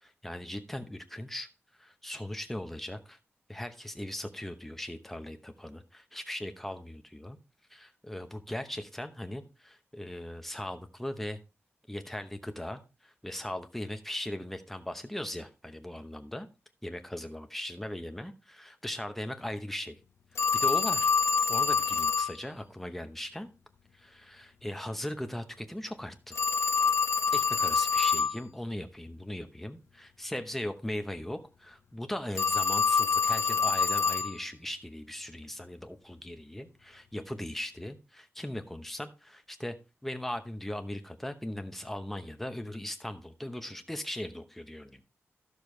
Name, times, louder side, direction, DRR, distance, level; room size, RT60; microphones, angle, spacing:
voice 1, 0.0-1.5 1.8-3.2 3.5-7.4 7.7-11.4 11.9-16.5 16.8-20.0 20.3-21.1 21.5-23.5 23.9-26.4 27.3-39.7 40.0-45.0, left 1 dB, 5° left, 7 dB, 0.9 m, -39 dB
Telephone, 20.4-22.3 26.3-28.4 32.3-34.3, left 5 dB, 70° left, 0.8 m, -26 dB
12.5 x 6.6 x 3.2 m, 0.31 s
wide cardioid pair, 165°, 5 cm